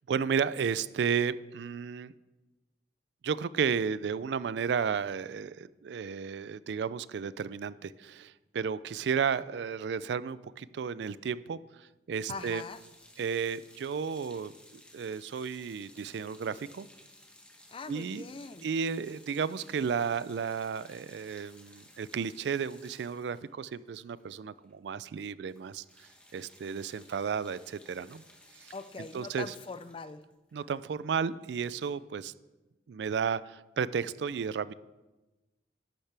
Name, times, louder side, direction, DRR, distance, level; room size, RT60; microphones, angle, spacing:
voice 1, 0.1-2.1 3.2-11.6 12.1-12.6 13.2-14.5 14.9-16.9 17.9-18.2 18.6-25.8 26.3-28.2 28.6-28.7 29.1-29.5 30.5-32.3 32.9-34.7, right 6 dB, 65° right, 17 dB, 0.3 m, -33 dB
voice 2, 12.3-12.8 17.7-18.7 28.7-30.2, left 4 dB, 30° left, 13 dB, 0.4 m, -42 dB
sound 1, 12.3-24.7 25.0-25.2 25.5-31.9, left 1 dB, 5° left, 1.2 m, -58 dB
12.5 x 10.0 x 3.4 m, 1.1 s
head